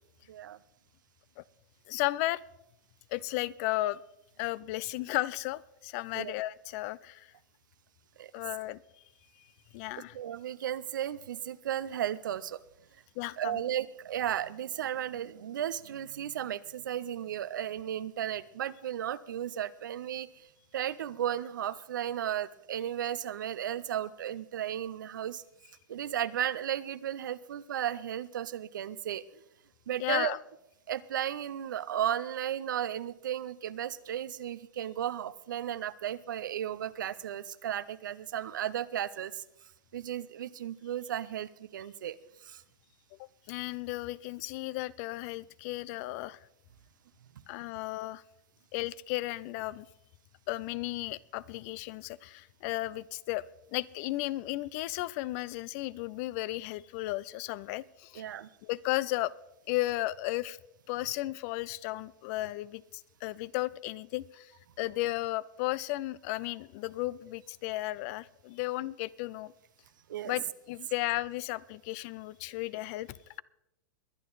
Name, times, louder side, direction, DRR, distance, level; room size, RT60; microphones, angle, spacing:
voice 1, 0.3-0.6 6.1-6.3 8.2-8.3 10.1-12.6 13.4-20.5 20.7-25.4 25.9-29.4 29.9-30.4 30.9-39.4 39.9-42.6 47.4-47.5 58.2-58.5 70.1-70.3, right 10 dB, 80° right, 17 dB, 0.6 m, -34 dB
voice 2, 1.9-2.4 3.1-4.0 4.4-7.3 8.3-8.8 9.7-10.2 13.2-13.6 30.0-30.4 43.2-46.4 47.5-48.2 48.7-49.9 50.5-53.5 53.7-58.2 58.6-59.3 59.7-60.6 60.9-62.8 63.2-64.5 64.8-69.5 70.2-73.4, left 18 dB, 50° left, 21 dB, 0.5 m, -34 dB
22.0 x 9.1 x 4.0 m, 0.84 s
hypercardioid pair, 115°, 10 cm